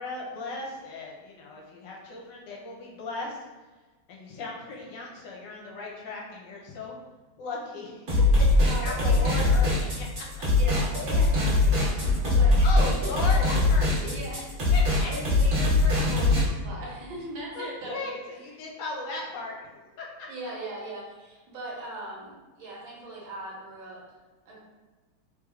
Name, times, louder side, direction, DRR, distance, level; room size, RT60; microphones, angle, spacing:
voice 1, 0.0-3.4 4.1-6.9 7.4-10.1 12.2-12.3 12.6-14.2 14.7-15.1 17.5-19.6 20.0-20.3, left 3 dB, 70° left, -2 dB, 1.2 m, -36 dB
sound 1, 8.1-16.4, left 2 dB, 45° right, 1.1 m, -22 dB
voice 2, 8.6-9.4 10.6-13.3 14.1-14.5 15.0-18.1 20.3-24.0 24.5-24.6, right 2 dB, 80° right, -5 dB, 1.7 m, -39 dB
3.3 x 3.3 x 2.3 m, 1.2 s
omnidirectional pair, 2.2 m